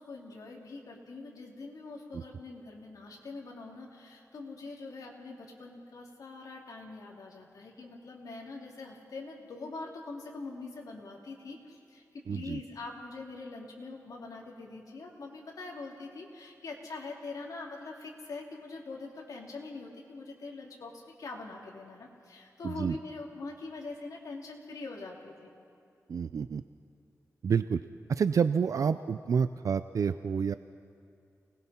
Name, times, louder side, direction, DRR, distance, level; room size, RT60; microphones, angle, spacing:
voice 1, 0.0-25.5, left 3 dB, 80° left, -1 dB, 2.9 m, -43 dB
voice 2, 12.3-12.6 22.6-23.0 26.1-26.6 27.4-27.8 28.1-30.5, right 6 dB, 65° right, 12 dB, 0.4 m, -28 dB
29.5 x 20.0 x 4.3 m, 2.5 s
wide cardioid pair, 140°, 6 cm